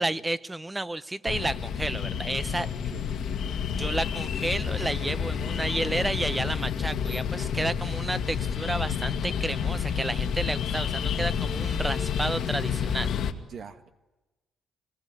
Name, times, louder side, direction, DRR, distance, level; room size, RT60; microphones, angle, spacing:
voice 1, 0.0-2.7 3.7-13.1, right 2 dB, 15° right, 16 dB, 0.9 m, -31 dB
sound 1, 1.3-13.3, left 7 dB, 75° left, 2.0 m, -29 dB
voice 2, 2.6-3.3 13.3-13.9, right 6 dB, 60° right, 8 dB, 1.5 m, -45 dB
24.5 x 20.0 x 9.8 m, 1.1 s
cardioid pair, 90°, 0 cm